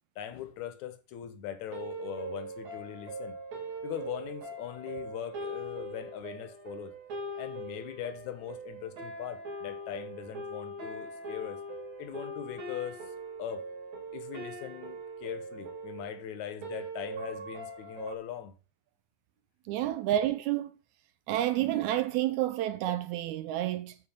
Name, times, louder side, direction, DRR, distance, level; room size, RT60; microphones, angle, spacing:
voice 1, 0.2-3.4 3.8-6.9 7.4-11.6 12.0-13.1 13.4-13.7 14.1-18.5, left 10 dB, 70° left, 2.2 m, -41 dB
sound 1, 1.7-18.2, right 2 dB, 60° right, 3.5 m, -41 dB
voice 2, 19.7-20.7 21.3-24.0, right 13 dB, 80° right, 1.7 m, -29 dB
9.0 x 4.4 x 7.1 m
omnidirectional pair, 3.7 m